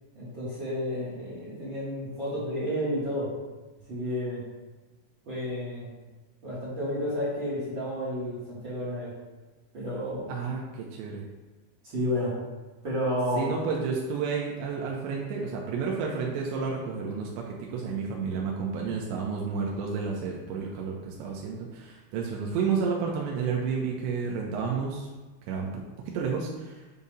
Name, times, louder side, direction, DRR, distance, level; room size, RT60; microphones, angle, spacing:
voice 1, 0.1-3.3 3.9-4.4 5.2-5.9 6.4-9.1 9.7-10.3 11.9-12.3 12.8-13.5, equal, 45° right, -9 dB, 1.6 m, -31 dB
voice 2, 10.3-11.2 13.4-25.1 25.5-25.8 26.1-26.8, right 5 dB, 90° right, -2 dB, 2.9 m, -31 dB
8.2 x 2.8 x 5.2 m, 1.2 s
omnidirectional pair, 5.1 m